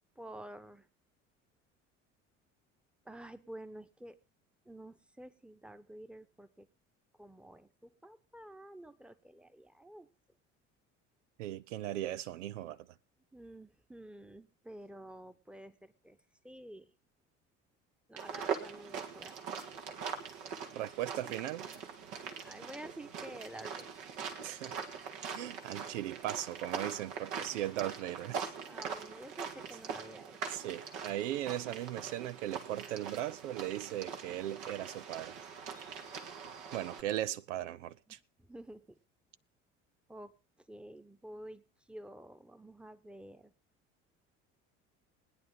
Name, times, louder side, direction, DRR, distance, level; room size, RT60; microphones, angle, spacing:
voice 1, 0.2-0.9 3.0-4.2 4.7-6.7 7.2-10.1 13.3-16.2 16.4-16.9 18.1-19.3 21.1-21.3 22.4-24.1 28.6-30.7 38.1-39.0 40.1-40.3 40.7-41.6 41.9-43.5, right 1 dB, 5° right, 1.1 m, -50 dB
voice 2, 11.4-12.8 20.8-21.7 24.4-24.7 25.3-28.5 30.5-35.4 36.7-38.2, right 13 dB, 85° right, 0.6 m, -38 dB
sound 1, 18.2-37.0, right 6 dB, 70° right, 2.0 m, -42 dB
21.0 x 9.6 x 3.9 m
hypercardioid pair, 65°, 36 cm